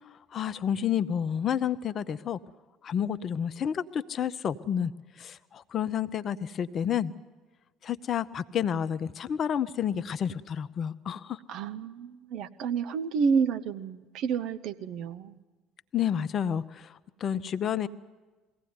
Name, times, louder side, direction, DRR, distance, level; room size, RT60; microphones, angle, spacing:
voice 1, 0.3-2.4 2.8-4.9 5.2-7.1 7.8-11.4 15.9-17.9, left 9 dB, 45° left, 14 dB, 0.7 m, -30 dB
voice 2, 11.5-15.4, right 6 dB, 60° right, 10 dB, 0.9 m, -30 dB
22.0 x 16.5 x 9.5 m, 1.3 s
figure-of-eight pair, 60°, 0 cm